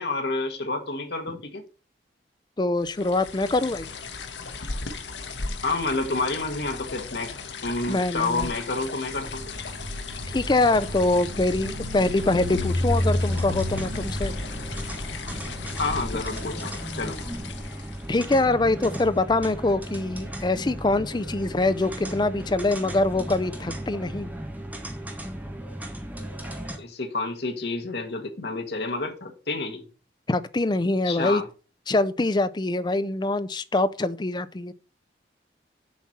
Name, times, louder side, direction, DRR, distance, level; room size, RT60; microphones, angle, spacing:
voice 1, 0.0-1.6 5.6-7.3 7.6-9.4 15.8-17.2 26.8-29.9 31.0-31.4, left 3 dB, 65° left, 1.5 m, -29 dB
voice 2, 2.6-3.9 7.9-8.5 10.3-14.3 18.1-24.3 30.3-31.4 31.9-34.7, left 2 dB, 25° left, 0.5 m, -24 dB
sound 1, 2.8-18.2, left 4 dB, 85° left, 1.1 m, -37 dB
sound 2, 9.2-16.1, left 1 dB, 50° right, 2.8 m, -31 dB
sound 3, 13.3-26.8, right 1 dB, 10° right, 1.3 m, -36 dB
7.3 x 4.3 x 6.0 m
head